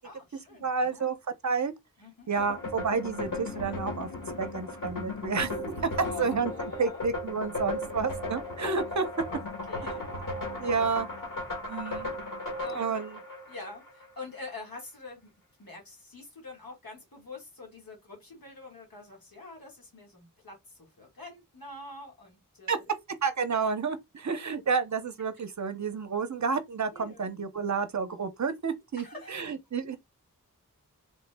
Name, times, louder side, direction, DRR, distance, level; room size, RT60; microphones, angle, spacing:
voice 1, 0.0-1.1 2.0-2.3 5.9-6.2 6.5-7.1 9.3-9.4 9.7-10.1 12.6-12.9 13.5-15.3 15.6-22.9 23.5-23.7 26.9-27.3 29.0-29.5, left 3 dB, 85° left, 1.4 m, -45 dB
voice 2, 0.6-1.2 1.4-1.7 2.3-4.1 4.4-5.5 5.8-5.9 6.2-9.1 10.6-11.1 11.7-12.1 12.7-13.2 22.7-22.8 23.2-30.0, right 5 dB, 55° right, 0.6 m, -30 dB
sound 1, 2.4-14.1, left 2 dB, 70° left, 1.0 m, -36 dB
3.2 x 2.0 x 3.2 m
wide cardioid pair, 55°, 34 cm